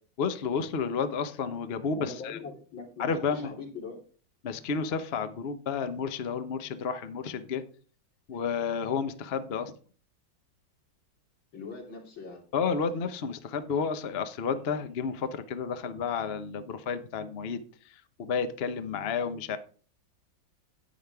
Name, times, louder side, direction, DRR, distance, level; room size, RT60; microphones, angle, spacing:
voice 1, 0.2-2.4 3.0-3.5 4.4-7.6 8.3-9.7 12.5-19.6, left 6 dB, 50° left, 10 dB, 0.7 m, -31 dB
voice 2, 1.9-4.0 11.5-12.4, left 4 dB, 75° left, -2 dB, 3.7 m, -41 dB
10.5 x 9.2 x 3.5 m, 0.41 s
omnidirectional pair, 2.1 m